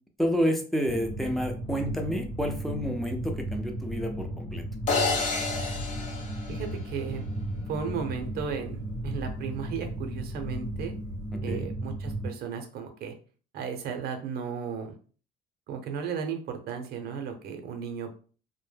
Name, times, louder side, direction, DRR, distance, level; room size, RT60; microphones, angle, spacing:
voice 1, 0.2-4.6 11.3-11.7, equal, ahead, 3 dB, 0.5 m, -29 dB
sound 1, 0.8-12.3, right 1 dB, 80° left, 1.0 m, -35 dB
sound 2, 4.9-7.2, left 4 dB, 45° left, 0.6 m, -30 dB
voice 2, 6.5-7.2 7.7-10.9 11.4-13.1 13.5-14.9 15.7-18.2, right 6 dB, 65° right, 5 dB, 0.6 m, -35 dB
2.1 x 2.0 x 3.2 m, 0.39 s
cardioid pair, 110°, 17 cm